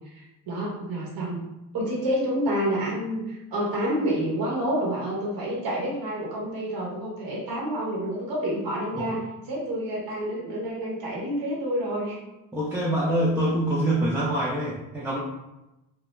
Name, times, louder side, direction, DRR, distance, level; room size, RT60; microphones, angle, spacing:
voice 1, 0.1-1.4 1.7-9.2 9.5-12.2, equal, 45° right, -4 dB, 1.0 m, -28 dB
voice 2, 12.5-15.2, right 1 dB, 5° right, -7 dB, 0.5 m, -25 dB
2.3 x 2.1 x 3.1 m, 0.97 s
hypercardioid pair, 60°, 48 cm